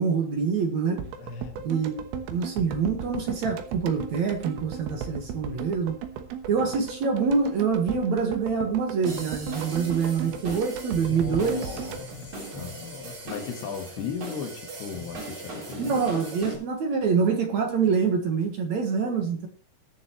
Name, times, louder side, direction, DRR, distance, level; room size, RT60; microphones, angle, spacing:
voice 1, 0.0-1.0 1.6-2.0 2.3-6.0 6.5-11.8 15.8-19.5, right 5 dB, 55° right, 4 dB, 2.2 m, -25 dB
sound 1, 1.0-13.2 13.4-13.5, right 7 dB, 75° right, 3.0 m, -36 dB
voice 2, 1.2-1.7 6.6-6.8 10.9-15.9, left 7 dB, 85° left, 5 dB, 3.6 m, -37 dB
sound 2, 9.0-16.5, right 1 dB, 40° right, 4.4 m, -39 dB
21.0 x 7.1 x 3.1 m, 0.43 s
omnidirectional pair, 4.5 m